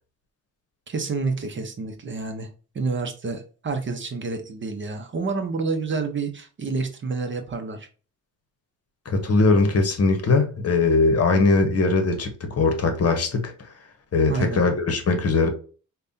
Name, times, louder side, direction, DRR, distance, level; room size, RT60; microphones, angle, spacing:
voice 1, 0.9-2.5 2.7-7.9 14.3-14.7, right 4 dB, 35° right, 0.7 m, -29 dB
voice 2, 9.1-13.7 14.1-15.5, left 3 dB, 45° left, 0.9 m, -20 dB
5.2 x 2.2 x 2.6 m
cardioid pair, 95°, 33 cm